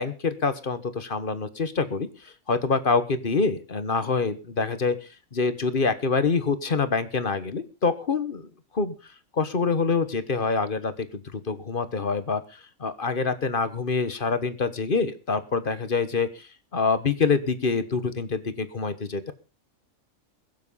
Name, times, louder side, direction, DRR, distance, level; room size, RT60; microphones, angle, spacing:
voice 1, 0.0-2.1 2.5-5.0 5.3-8.5 8.7-8.9 9.3-12.4 12.8-16.5 16.7-19.3, left 4 dB, 40° left, 12 dB, 1.4 m, -26 dB
21.5 x 7.5 x 5.5 m, 0.34 s
omnidirectional pair, 1.4 m